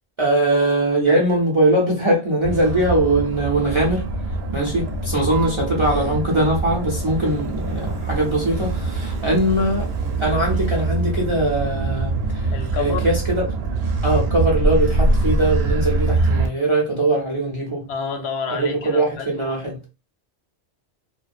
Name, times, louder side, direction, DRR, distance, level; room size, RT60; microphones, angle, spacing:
voice 1, 0.2-4.1 4.5-9.9 10.2-12.5 12.8-13.4 14.0-17.8 18.5-19.8, right 1 dB, 40° right, 0.4 m, -21 dB
Motor vehicle (road), 2.4-16.5, right 3 dB, 70° right, 0.8 m, -24 dB
voice 2, 12.5-13.1 17.9-19.6, left 5 dB, 75° left, 0.8 m, -29 dB
2.3 x 2.1 x 2.4 m
omnidirectional pair, 1.1 m